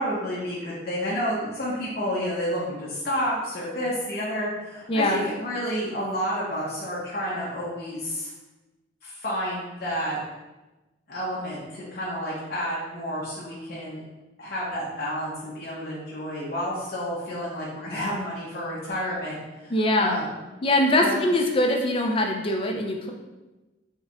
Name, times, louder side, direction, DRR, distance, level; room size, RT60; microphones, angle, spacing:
voice 1, 0.0-8.3 9.0-10.2 11.1-14.0 14.4-20.3 20.9-21.2, equal, 55° left, -8 dB, 0.8 m, -30 dB
voice 2, 4.9-5.2 19.7-20.2 20.6-23.1, left 1 dB, 30° left, 2 dB, 0.4 m, -22 dB
4.4 x 2.2 x 3.7 m, 1.1 s
head